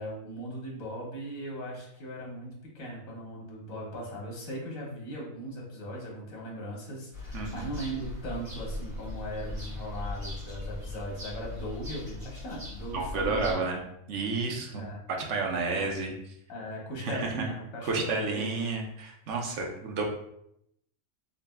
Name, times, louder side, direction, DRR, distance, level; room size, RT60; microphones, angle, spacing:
voice 1, 0.0-13.6 14.7-15.0 15.8-15.9 16.5-18.8 19.5-19.7, equal, 85° left, -2 dB, 1.5 m, -39 dB
sound 1, 7.1-13.5, left 2 dB, 45° right, 1.7 m, -39 dB
voice 2, 7.3-7.7 12.9-13.8 14.1-16.1 17.0-17.3 17.8-20.0, right 3 dB, 65° right, 1 dB, 1.0 m, -31 dB
4.0 x 3.7 x 2.2 m, 0.76 s
omnidirectional pair, 1.4 m